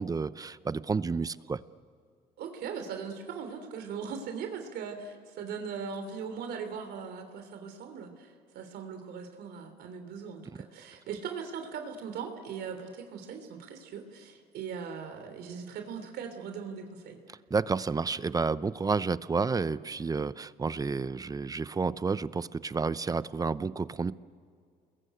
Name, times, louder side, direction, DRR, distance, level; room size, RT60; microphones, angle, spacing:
voice 1, 0.0-1.6 17.5-24.1, right 4 dB, 20° right, 16 dB, 0.7 m, -30 dB
voice 2, 2.4-17.2, right 6 dB, 75° right, 6 dB, 3.3 m, -39 dB
29.5 x 21.5 x 9.1 m, 2.2 s
cardioid pair, 110°, 17 cm